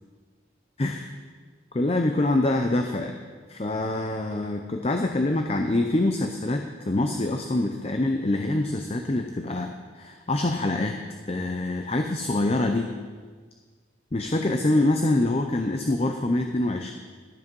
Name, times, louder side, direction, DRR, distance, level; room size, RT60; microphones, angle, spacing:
voice 1, 0.8-1.1 1.7-3.1 3.5-11.0 11.3-12.9 14.1-16.9, left 2 dB, 30° left, 4 dB, 0.5 m, -25 dB
12.5 x 7.8 x 5.4 m, 1.5 s
head